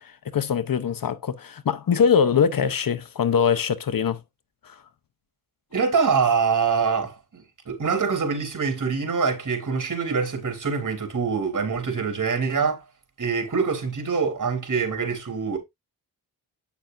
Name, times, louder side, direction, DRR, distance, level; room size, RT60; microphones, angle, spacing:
voice 1, 0.0-4.2 4.6-4.8, left 7 dB, 60° left, 0.8 m, -23 dB
voice 2, 5.7-12.8 13.2-15.6, right 5 dB, 50° right, 3.4 m, -24 dB
8.9 x 6.9 x 2.6 m
cardioid pair, 55°, 39 cm